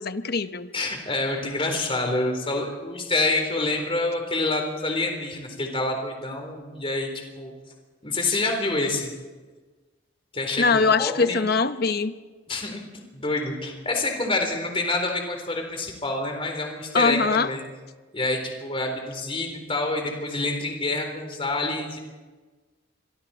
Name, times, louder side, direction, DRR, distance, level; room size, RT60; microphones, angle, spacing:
voice 1, 0.0-0.7 10.6-12.1 16.9-17.5, left 4 dB, 55° left, 11 dB, 0.9 m, -22 dB
voice 2, 0.7-7.5 8.0-9.1 10.3-11.4 12.5-12.8 13.1-17.6 18.1-22.0, left 2 dB, 30° left, 3 dB, 3.9 m, -27 dB
26.5 x 23.5 x 4.4 m, 1.3 s
head